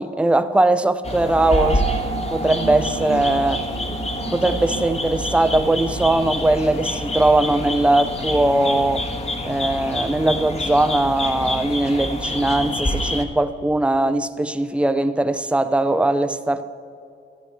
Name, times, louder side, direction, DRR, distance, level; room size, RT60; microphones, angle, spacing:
voice 1, 0.0-1.9 2.3-3.6 4.3-9.1 9.4-16.7, right 2 dB, 5° right, 0.5 m, -20 dB
sound 1, 1.0-13.2, left 1 dB, 30° left, 1.3 m, -27 dB
sound 2, 1.4-6.0, right 5 dB, 80° right, 1.9 m, -31 dB
13.0 x 12.0 x 4.3 m
cardioid pair, 90°, 20 cm